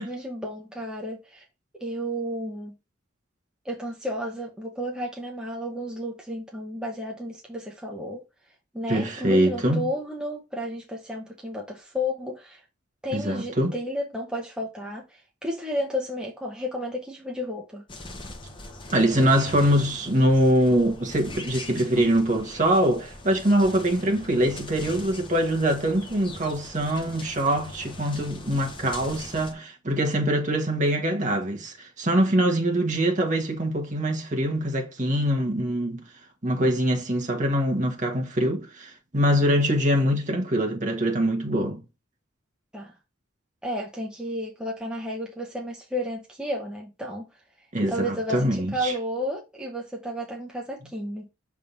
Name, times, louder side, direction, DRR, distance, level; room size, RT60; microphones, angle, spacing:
voice 1, 0.0-1.4 1.7-2.7 3.6-8.2 8.7-12.6 13.0-17.8 42.7-42.9 43.6-47.3 47.9-51.3, equal, 5° right, 0.9 m, -32 dB
voice 2, 8.9-9.9 13.1-13.7 18.9-36.0 36.4-41.8 47.7-48.9, equal, 35° right, 1.4 m, -23 dB
sound 1, 17.9-29.5, left 2 dB, 25° left, 0.9 m, -41 dB
6.4 x 3.6 x 4.1 m
head